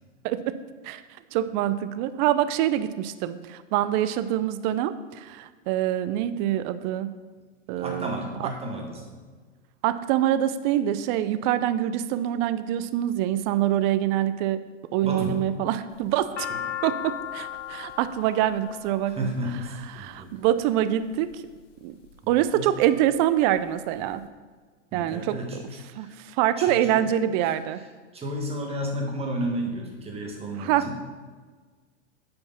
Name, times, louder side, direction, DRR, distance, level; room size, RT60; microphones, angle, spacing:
voice 1, 1.3-7.1 7.7-8.5 9.8-14.6 14.9-16.5 16.8-19.3 20.0-21.3 21.8-21.9 22.3-24.2 24.9-25.4 26.0-27.8 30.6-30.8, right 12 dB, 40° right, 13 dB, 0.6 m, -25 dB
voice 2, 7.8-9.2 15.0-15.5 16.5-16.6 19.1-20.3 22.2-22.7 24.9-26.2 26.6-26.9 27.4-30.9, equal, 15° right, 0 dB, 1.9 m, -33 dB
sound 1, 15.9-20.2 21.0-21.5 22.1-22.7 23.1-23.2 23.3-24.2, left 9 dB, 75° left, 1.2 m, -36 dB
9.5 x 5.3 x 5.7 m, 1.4 s
hypercardioid pair, 120°, 36 cm